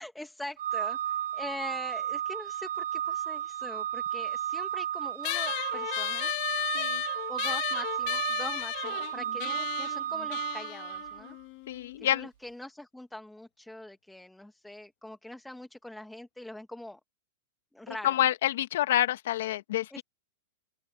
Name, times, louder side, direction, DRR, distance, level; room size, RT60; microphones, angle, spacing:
voice 1, 0.0-6.3 7.3-11.4 12.0-17.0 17.7-18.2 19.9-20.0, left 1 dB, 5° left, 1.5 m, -43 dB
Organ, 0.6-11.3, right 10 dB, 75° right, 0.4 m, -33 dB
sound 1, 5.2-12.0, left 21 dB, 40° left, 1.7 m, -35 dB
voice 2, 11.7-12.3 17.9-20.0, left 12 dB, 70° left, 1.3 m, -28 dB
open air
supercardioid pair, 160°, 0 cm